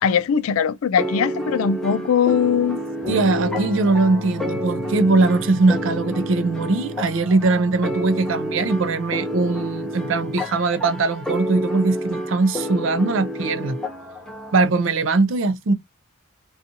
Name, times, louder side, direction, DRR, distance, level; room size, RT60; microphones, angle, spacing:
voice 1, 0.0-2.8, left 7 dB, 90° left, 0.3 m, -20 dB
sound 1, 1.0-14.7, equal, 5° left, 0.6 m, -30 dB
sound 2, 3.0-10.7, left 1 dB, 35° right, 1.2 m, -35 dB
voice 2, 3.1-13.8 14.5-15.7, right 3 dB, 70° right, 0.4 m, -21 dB
2.5 x 2.3 x 2.7 m
head